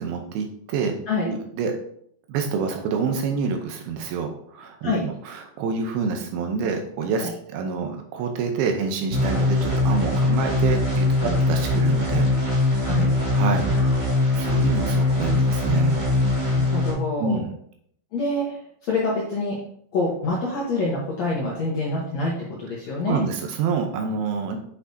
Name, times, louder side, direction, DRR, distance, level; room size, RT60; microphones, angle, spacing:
voice 1, 0.0-1.0 1.2-1.7 2.3-11.2 11.5-12.3 13.3-13.7 14.3-16.0 17.2-17.5 23.1-24.6, right 5 dB, 80° right, 4 dB, 2.5 m, -27 dB
sound 1, 9.1-16.9, left 2 dB, 15° right, 1.6 m, -21 dB
voice 2, 13.7-14.3 16.4-17.4 18.1-19.6 19.9-23.2, left 2 dB, 70° left, -4 dB, 1.6 m, -27 dB
8.3 x 5.8 x 2.7 m, 0.67 s
omnidirectional pair, 4.7 m